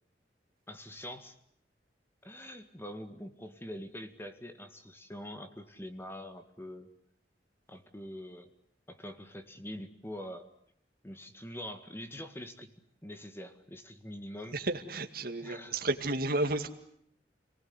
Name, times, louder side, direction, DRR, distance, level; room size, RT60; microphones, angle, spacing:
voice 1, 0.7-1.4 2.2-6.9 7.7-8.5 8.9-10.5 11.0-12.7 13.0-14.6 15.4-15.9, left 1 dB, 15° left, 8 dB, 2.0 m, -44 dB
voice 2, 14.5-16.7, right 2 dB, 55° right, 5 dB, 2.2 m, -32 dB
30.0 x 19.0 x 9.8 m, 0.70 s
head